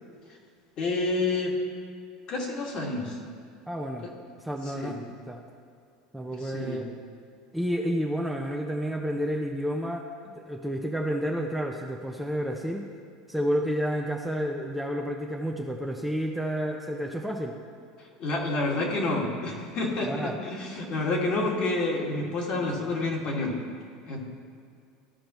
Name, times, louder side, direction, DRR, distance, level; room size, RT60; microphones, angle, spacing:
voice 1, 0.8-1.5 2.3-3.2 4.8-5.0 6.4-6.9 18.2-23.6 24.1-24.2, left 2 dB, 50° left, -2 dB, 2.0 m, -29 dB
voice 2, 3.7-4.1 4.4-5.4 6.1-6.9 7.5-10.0 10.3-12.9 13.3-17.6 20.0-20.4, equal, 5° right, 1 dB, 0.6 m, -30 dB
14.5 x 5.0 x 3.1 m, 2.3 s
supercardioid pair, 110°, 2 cm